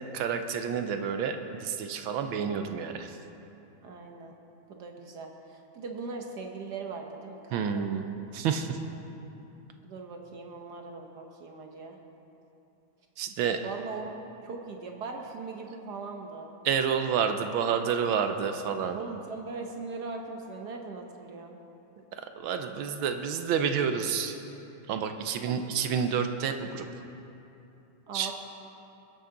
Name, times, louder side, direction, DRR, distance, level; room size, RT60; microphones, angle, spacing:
voice 1, 0.1-3.1 7.5-8.0 8.3-8.8 13.2-13.6 16.6-19.0 22.4-24.4 24.9-26.9 28.1-28.3, right 7 dB, 75° right, 7 dB, 1.5 m, -29 dB
voice 2, 3.8-4.3 4.7-7.9 9.8-12.0 13.6-14.2 14.4-16.5 18.9-21.6 25.5-25.6 28.1-28.3, right 4 dB, 60° right, 2 dB, 1.3 m, -40 dB
22.5 x 8.2 x 3.8 m, 2.9 s
omnidirectional pair, 2.4 m